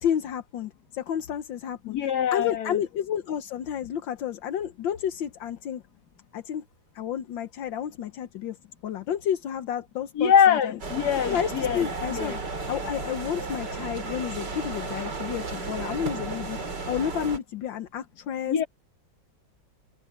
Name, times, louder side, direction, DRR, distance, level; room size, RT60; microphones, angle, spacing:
voice 1, 0.0-2.0 2.3-5.8 6.3-6.6 6.9-8.6 8.8-10.8 11.3-12.4 12.7-16.6 16.9-18.6, left 9 dB, 80° left, 1.7 m, -31 dB
voice 2, 1.8-2.8 10.2-12.4 18.5-18.7, left 8 dB, 60° left, 2.0 m, -23 dB
sound 1, 10.8-17.4, right 3 dB, 65° right, 3.7 m, -34 dB
omnidirectional pair, 2.0 m